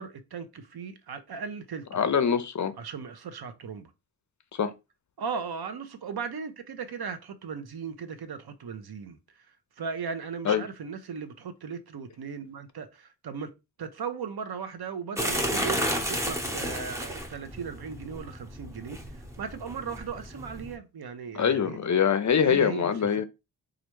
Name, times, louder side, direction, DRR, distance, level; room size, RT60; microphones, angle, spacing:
voice 1, 0.0-1.9 2.8-3.9 5.2-9.5 9.8-13.5 13.8-21.8 22.4-22.9, right 6 dB, 60° right, 0.7 m, -37 dB
voice 2, 1.9-2.7 4.5-4.7 10.5-10.7 21.3-23.2, left 7 dB, 45° left, 0.5 m, -24 dB
sound 1, 15.2-20.7, equal, 5° right, 0.8 m, -32 dB
3.1 x 2.5 x 3.0 m
cardioid pair, 40°, 42 cm